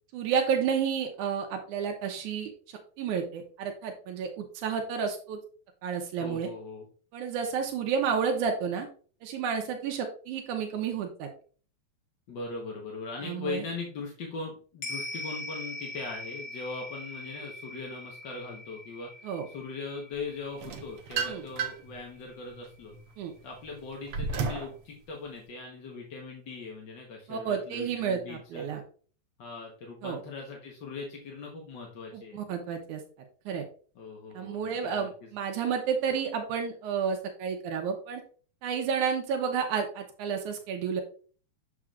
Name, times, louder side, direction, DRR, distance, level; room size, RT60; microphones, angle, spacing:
voice 1, 0.1-2.5 3.0-5.4 5.8-6.5 7.1-8.9 9.2-11.3 13.2-13.6 19.2-19.5 21.3-21.4 23.2-23.3 27.3-28.8 30.0-30.2 32.1-33.0 33.5-33.6 34.4-38.2 38.6-41.0, right 6 dB, 85° right, 4 dB, 2.3 m, -31 dB
voice 2, 6.2-6.9 12.3-22.9 23.4-28.7 29.4-32.4 33.9-35.3, left 3 dB, 55° left, -1 dB, 1.3 m, -40 dB
sound 1, 14.8-23.4 23.7-23.8, left 2 dB, 90° left, 0.9 m, -42 dB
sound 2, 20.6-22.0 22.5-24.8, right 5 dB, 65° right, 1.4 m, -33 dB
7.2 x 5.9 x 2.4 m, 0.41 s
omnidirectional pair, 3.4 m